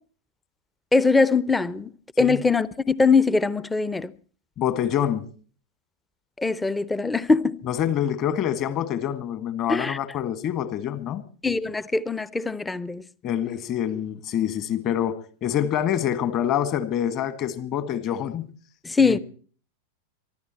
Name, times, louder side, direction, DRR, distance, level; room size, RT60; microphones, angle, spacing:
voice 1, 0.9-1.9 2.2-4.1 6.4-7.6 9.7-10.0 11.4-13.0 18.8-19.2, left 4 dB, 10° left, 0.7 m, -22 dB
voice 2, 4.6-5.3 7.6-11.2 13.2-18.5 19.0-19.2, left 10 dB, 35° left, 1.9 m, -26 dB
24.0 x 13.0 x 4.3 m
figure-of-eight pair, 90°, 0 cm